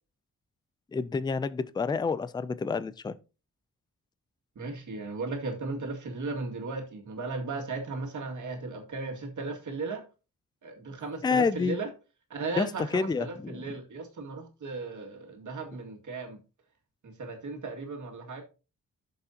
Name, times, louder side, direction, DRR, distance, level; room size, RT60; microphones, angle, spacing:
voice 1, 0.9-3.2 11.2-11.8 12.6-13.6, left 5 dB, 15° left, 0.3 m, -28 dB
voice 2, 4.6-10.0 10.6-11.9 12.3-16.4 17.0-18.4, right 3 dB, 65° right, 2.1 m, -36 dB
10.5 x 6.9 x 2.8 m
wide cardioid pair, 175°, 33 cm